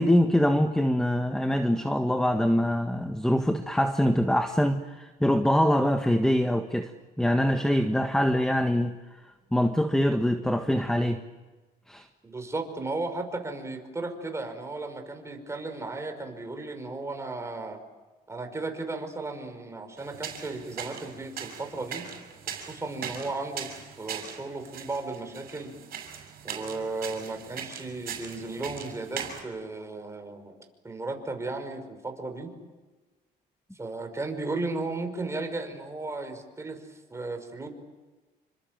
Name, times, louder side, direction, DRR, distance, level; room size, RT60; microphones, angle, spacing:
voice 1, 0.0-6.9 7.2-8.9 9.5-11.2 11.9-12.1, equal, 5° left, 7 dB, 1.5 m, -24 dB
voice 2, 12.2-17.8 18.3-22.1 22.6-23.7 24.0-25.7 26.4-30.6 30.8-32.5 33.7-37.7, right 3 dB, 15° right, 5 dB, 5.5 m, -35 dB
sound 1, 20.0-29.4, right 8 dB, 60° right, 7.1 m, -40 dB
28.5 x 25.0 x 7.7 m, 1.2 s
cardioid pair, 110°, 17 cm